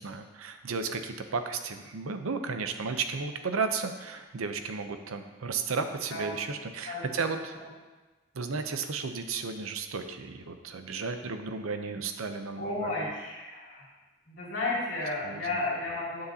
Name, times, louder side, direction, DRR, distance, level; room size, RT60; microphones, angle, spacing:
voice 1, 0.0-7.6 8.3-13.0 15.2-15.4, right 4 dB, 90° right, 7 dB, 0.6 m, -34 dB
voice 2, 12.6-13.9 14.3-16.2, left 2 dB, 60° left, -6 dB, 2.6 m, -33 dB
9.7 x 6.6 x 2.8 m, 1.2 s
head